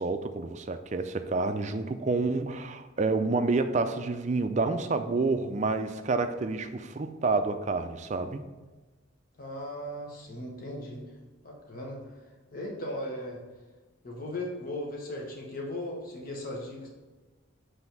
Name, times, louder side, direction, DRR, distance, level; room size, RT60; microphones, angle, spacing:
voice 1, 0.0-8.4, right 3 dB, 35° right, 9 dB, 0.4 m, -29 dB
voice 2, 9.4-11.0 11.4-12.2 12.5-13.4 14.0-16.9, left 1 dB, 45° left, -2 dB, 1.2 m, -37 dB
7.2 x 3.5 x 5.8 m, 1.2 s
head